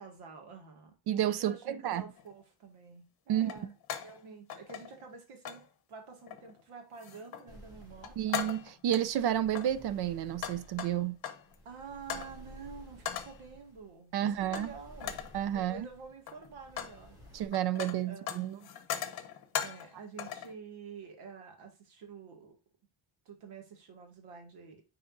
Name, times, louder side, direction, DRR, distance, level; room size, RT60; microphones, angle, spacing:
voice 1, 0.0-1.0 1.4-3.7 4.0-8.3 11.7-15.2 15.5-17.2 18.0-18.3 19.6-22.6 23.3-24.8, right 5 dB, 85° right, 2.0 m, -48 dB
voice 2, 1.1-2.0 3.3-3.5 8.2-11.2 14.1-14.7 15.3-15.9 17.3-18.6, right 11 dB, 50° right, 0.5 m, -31 dB
sound 1, 2.2-2.3 3.4-4.2 4.5-5.1 5.4-5.7 6.3-6.6 7.0-7.5 7.8-9.1 9.5-11.5 12.1-12.4 13.0-13.4 14.5-14.7 15.0-15.4 16.1-17.0 17.3-19.9 20.2-20.5, left 9 dB, 45° left, 0.9 m, -39 dB
sound 2, 7.5-17.5, equal, 5° right, 2.5 m, -55 dB
9.4 x 4.2 x 2.6 m
cardioid pair, 155°, 50 cm